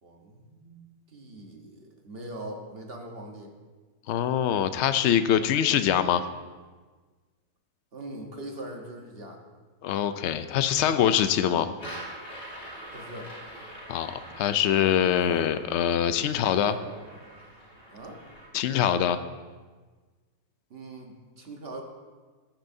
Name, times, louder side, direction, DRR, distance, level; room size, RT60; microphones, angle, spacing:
voice 1, 0.0-0.8 1.1-3.5 7.9-9.4 12.9-13.3 16.4-17.2 17.9-18.2 20.7-21.8, right 1 dB, 45° right, 2 dB, 1.3 m, -42 dB
voice 2, 4.1-6.2 9.8-11.7 13.9-16.8 18.5-19.2, left 9 dB, 65° left, 11 dB, 0.7 m, -24 dB
sound 1, 11.7-18.5, right 1 dB, 35° left, 3.8 m, -44 dB
14.5 x 10.5 x 2.7 m, 1.4 s
omnidirectional pair, 1.6 m